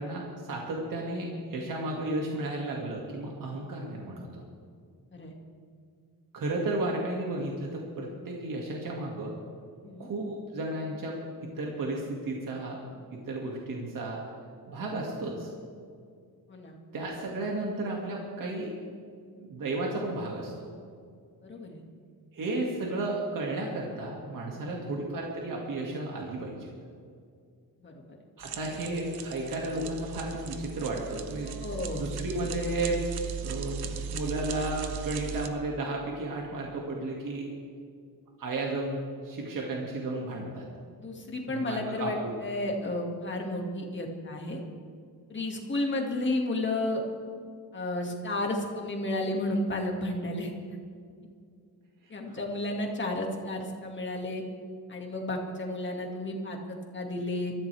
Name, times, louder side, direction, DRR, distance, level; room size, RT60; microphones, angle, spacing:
voice 1, 0.0-4.4 6.3-9.3 10.0-12.8 13.1-14.2 14.7-15.5 16.9-18.7 19.4-20.7 22.3-26.7 28.4-31.6 31.9-33.0 33.4-37.5 38.4-40.7 41.5-42.3 52.0-52.4, right 2 dB, 60° right, -2 dB, 2.3 m, -33 dB
voice 2, 21.4-21.8 24.5-24.9 27.8-28.2 31.4-32.1 41.0-44.6 45.3-47.0 47.7-50.5 52.1-54.4 54.9-57.5, left 1 dB, 30° left, 1 dB, 2.1 m, -32 dB
sound 1, 28.4-35.5, right 6 dB, 85° right, 1.1 m, -38 dB
23.0 x 14.5 x 3.5 m, 2.2 s
wide cardioid pair, 170°, 37 cm